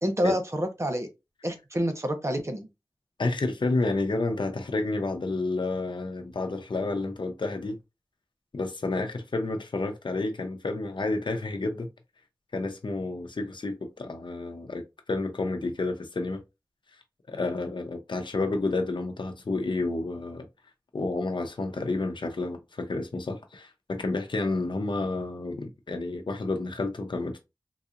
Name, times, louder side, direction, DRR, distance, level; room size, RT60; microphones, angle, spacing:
voice 1, 0.0-1.1 1.4-2.7, equal, 35° right, 0.9 m, -28 dB
voice 2, 3.2-7.8 8.5-11.9 12.5-16.4 17.3-20.5 20.9-27.4, left 2 dB, 80° left, 0.7 m, -30 dB
3.9 x 2.8 x 2.4 m
wide cardioid pair, 45°, 8 cm